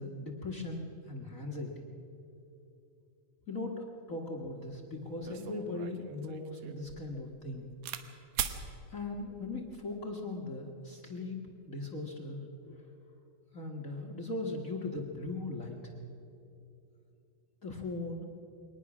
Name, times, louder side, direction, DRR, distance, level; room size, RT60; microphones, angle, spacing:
voice 1, 0.0-1.7 3.5-7.7 8.9-11.4 11.6-12.8 13.5-16.0 17.6-18.3, left 2 dB, 40° left, 1 dB, 1.2 m, -39 dB
sound 1, 4.7-4.8 5.2-8.0 8.3-8.6 9.5-9.8, right 9 dB, 90° right, 2.4 m, -40 dB
22.5 x 19.0 x 6.1 m, 2.8 s
omnidirectional pair, 3.3 m